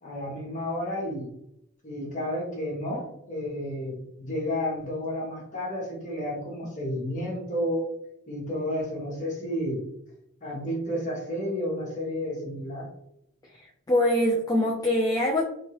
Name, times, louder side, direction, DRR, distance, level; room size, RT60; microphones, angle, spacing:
voice 1, 0.0-1.3 1.8-7.9 8.3-9.9 10.4-12.9, equal, 35° left, -4 dB, 1.2 m, -31 dB
voice 2, 13.6-15.4, left 1 dB, 15° left, -2 dB, 0.3 m, -24 dB
2.9 x 2.7 x 2.8 m, 0.75 s
head